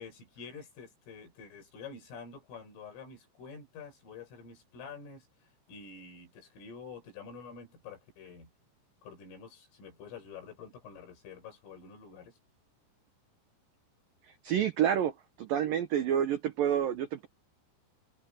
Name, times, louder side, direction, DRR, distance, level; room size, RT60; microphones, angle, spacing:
voice 1, 0.0-5.3 5.7-8.5 9.0-12.3, left 5 dB, 85° left, 9.8 m, -48 dB
voice 2, 14.3-17.3, right 9 dB, 85° right, 1.9 m, -29 dB
omnidirectional pair, 5.7 m